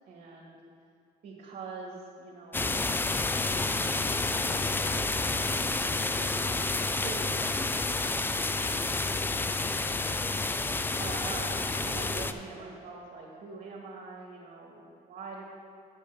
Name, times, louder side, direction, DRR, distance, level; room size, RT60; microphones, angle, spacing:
voice 1, 0.1-0.6 1.2-2.7 3.0-5.1 5.4-10.0 11.0-15.4, right 3 dB, 55° right, -3 dB, 1.7 m, -44 dB
sound 1, 2.5-12.3, left 3 dB, 10° left, 0.3 m, -29 dB
10.0 x 5.5 x 6.4 m, 2.4 s
cardioid pair, 110°, 17 cm